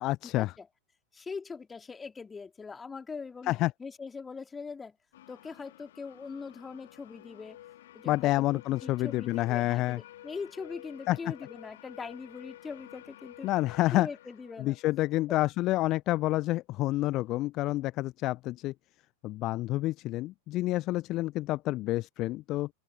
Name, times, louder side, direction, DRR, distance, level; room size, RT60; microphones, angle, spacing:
voice 1, 0.0-0.5 3.4-3.7 8.1-10.0 11.1-11.2 13.4-14.1 14.6-18.7 19.2-22.7, left 17 dB, 35° left, 0.6 m, -28 dB
voice 2, 1.1-3.5 3.8-5.0 5.3-7.6 7.9-8.5 8.8-13.5 13.9-14.8 15.3-15.4, left 5 dB, 15° left, 2.9 m, -41 dB
sound 1, 5.1-15.7, left 13 dB, 55° left, 2.7 m, -51 dB
open air
figure-of-eight pair, 90°, 0 cm